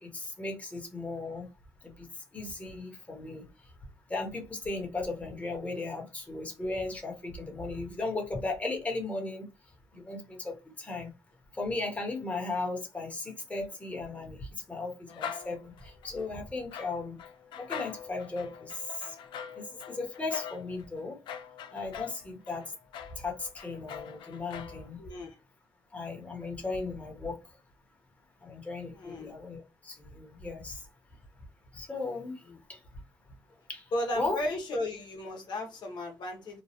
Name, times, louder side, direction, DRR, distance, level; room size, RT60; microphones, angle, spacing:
voice 1, 0.0-1.5 1.8-3.5 4.1-9.4 9.9-11.1 11.5-17.2 17.5-19.2 19.5-21.2 21.7-22.6 23.2-25.0 25.9-27.4 28.4-30.8 31.7-32.4 32.7-32.8 33.7-34.4, left 3 dB, 15° left, 1.1 m, -36 dB
sound 1, 15.1-16.3 16.7-24.9, left 8 dB, 85° left, 0.4 m, -43 dB
voice 2, 25.0-25.3 28.9-29.4 32.5-32.6 33.9-36.6, left 1 dB, 65° left, 1.1 m, -35 dB
3.0 x 2.2 x 2.9 m
cardioid pair, 95°, 8 cm